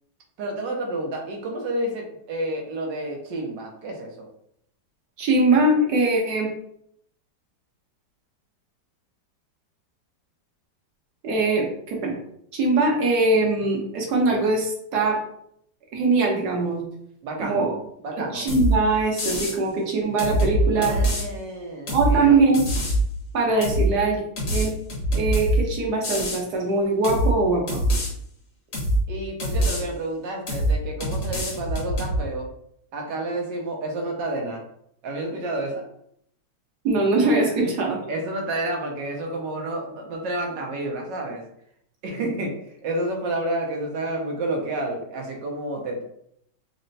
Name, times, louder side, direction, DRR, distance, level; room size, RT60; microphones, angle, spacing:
voice 1, 0.4-4.3 17.2-17.7 18.0-18.4 20.7-22.4 29.1-32.5 32.9-34.6 35.0-35.8 37.6-37.7 38.1-41.4 42.0-46.0, right 1 dB, 80° right, 1 dB, 1.5 m, -30 dB
voice 2, 5.2-6.5 11.2-12.2 12.5-15.2 15.9-16.8 17.4-17.7 18.3-20.9 21.9-22.7 23.3-24.2 24.5-24.7 25.1-27.8 36.8-38.0, right 3 dB, 65° right, -1 dB, 1.5 m, -21 dB
sound 1, 18.5-18.7 19.2-19.6 20.2-21.2 21.9-22.1 22.5-23.0 23.6-23.9 24.4-25.6 26.0-26.4 27.0-27.3 27.7-28.1 28.7-29.0 29.4-29.8 30.5-30.7 31.0-32.2, right 1 dB, 50° left, 1.4 m, -24 dB
4.3 x 2.1 x 3.9 m, 0.71 s
omnidirectional pair, 1.9 m